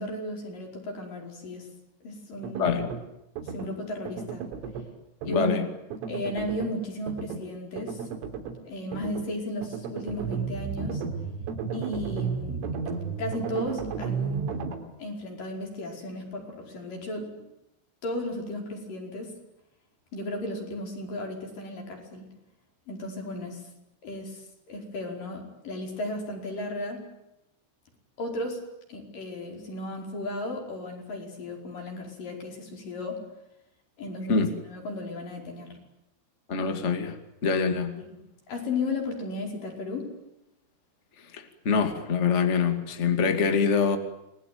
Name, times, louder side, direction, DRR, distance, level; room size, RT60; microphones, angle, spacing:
voice 1, 0.0-1.7 2.0-2.7 3.5-4.4 5.2-5.6 6.1-8.1 8.7-11.0 11.7-12.6 13.2-14.5 15.0-17.5 18.0-19.3 20.1-22.3 22.9-23.6 24.0-27.1 28.2-28.6 28.9-33.2 34.0-35.8 38.5-40.1, left 1 dB, 45° left, 2 dB, 6.4 m, -35 dB
sound 1, 2.4-3.0 3.4-3.7 4.1-4.9 5.2-5.6 5.9-6.7 7.1-7.4 7.8-8.6 8.9-9.3 9.6-14.8, right 6 dB, 85° right, 5.6 m, -33 dB
voice 2, 5.3-5.6 34.3-34.5 36.5-38.0 41.3-44.0, left 5 dB, 65° left, 7 dB, 0.6 m, -25 dB
28.0 x 21.5 x 9.4 m, 0.87 s
omnidirectional pair, 5.6 m